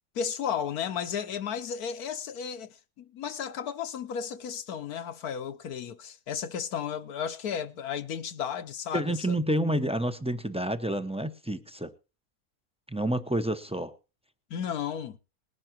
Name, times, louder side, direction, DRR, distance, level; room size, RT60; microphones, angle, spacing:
voice 1, 0.1-9.4 14.5-15.2, left 8 dB, 80° left, 1.5 m, -34 dB
voice 2, 8.9-11.9 12.9-13.9, right 1 dB, 5° right, 0.7 m, -29 dB
20.5 x 11.0 x 2.8 m
omnidirectional pair, 1.6 m